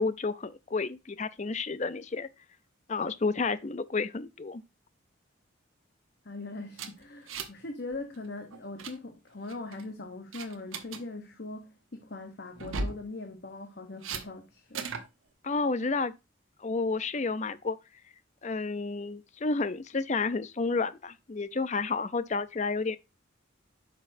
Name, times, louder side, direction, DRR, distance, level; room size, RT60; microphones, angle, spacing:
voice 1, 0.0-2.3 2.9-4.6 15.4-16.1 16.6-17.8 18.4-23.0, left 4 dB, 35° left, 0.5 m, -31 dB
voice 2, 6.2-14.9, left 2 dB, 50° left, 0.9 m, -41 dB
sound 1, 6.7-7.7 7.9-8.2 8.5-8.9 9.5-9.8 10.3-11.0 12.5-13.0 14.0-14.2 14.7-15.1, right 4 dB, 80° right, 1.0 m, -36 dB
9.5 x 6.1 x 2.6 m
head